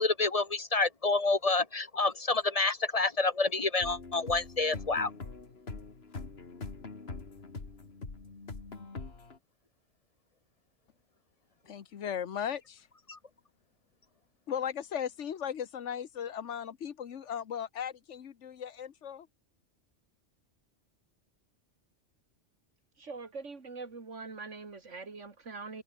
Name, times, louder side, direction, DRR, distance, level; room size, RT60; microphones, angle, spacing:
voice 1, 0.0-5.1 13.1-13.2, left 3 dB, 30° left, 1.2 m, -28 dB
sound 1, 3.8-9.4, left 3 dB, 60° left, 2.5 m, -43 dB
voice 2, 11.7-12.8 14.5-19.3, left 8 dB, 80° left, 1.4 m, -37 dB
voice 3, 23.0-25.8, right 4 dB, 85° right, 2.8 m, -43 dB
omnidirectional pair, 1.2 m